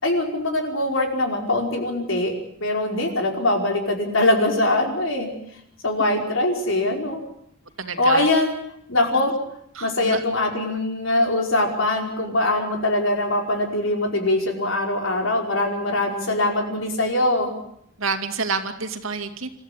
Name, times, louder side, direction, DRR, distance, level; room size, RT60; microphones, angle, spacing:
voice 1, 0.0-2.3 2.6-5.3 5.8-7.2 8.0-8.5 8.9-9.4 9.8-17.5, left 2 dB, 70° left, 3 dB, 5.1 m, -22 dB
voice 2, 7.8-8.3 9.7-10.2 18.0-19.5, right 4 dB, 90° right, 6 dB, 2.5 m, -28 dB
27.5 x 14.0 x 10.0 m, 0.74 s
head